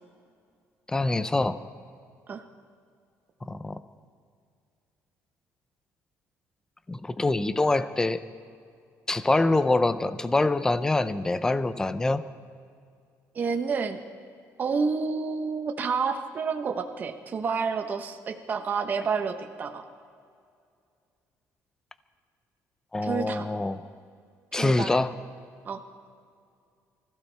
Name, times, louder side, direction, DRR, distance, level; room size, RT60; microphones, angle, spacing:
voice 1, 0.9-1.6 3.5-3.8 6.9-8.2 9.1-12.3 22.9-23.9 24.5-25.1, left 2 dB, 10° left, 13 dB, 0.5 m, -25 dB
voice 2, 13.3-14.0 14.6-19.9 23.0-23.5 24.6-25.0 25.6-25.8, right 5 dB, 35° right, 5 dB, 0.9 m, -29 dB
25.0 x 15.0 x 3.4 m, 2.3 s
cardioid pair, 155°, 6 cm